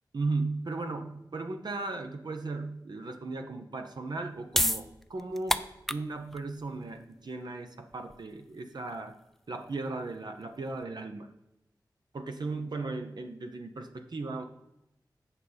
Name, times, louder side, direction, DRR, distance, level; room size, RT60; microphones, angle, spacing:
voice 1, 0.1-5.6 5.9-9.2 9.5-11.3 12.1-14.4, right 3 dB, 65° right, 6 dB, 0.8 m, -36 dB
sound 1, 4.1-10.8, equal, 5° left, 0.4 m, -34 dB
8.5 x 5.5 x 5.0 m, 0.86 s
cardioid pair, 55°, 8 cm